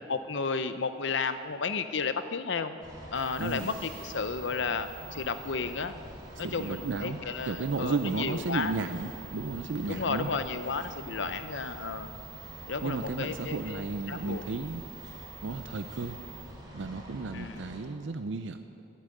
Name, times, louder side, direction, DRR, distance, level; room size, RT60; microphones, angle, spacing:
voice 1, 0.1-2.7 3.1-5.9 6.4-8.7 9.9-12.1 12.7-14.4 17.3-17.6, left 5 dB, 70° left, 11 dB, 0.7 m, -33 dB
sound 1, 2.8-17.8, equal, 25° right, 3.4 m, -46 dB
sound 2, 3.1-16.4, right 8 dB, 50° right, 2.9 m, -49 dB
voice 2, 6.4-10.3 12.8-14.8 15.4-16.2 16.7-18.8, right 3 dB, 75° right, 8 dB, 0.5 m, -34 dB
11.5 x 8.8 x 8.5 m, 2.5 s
head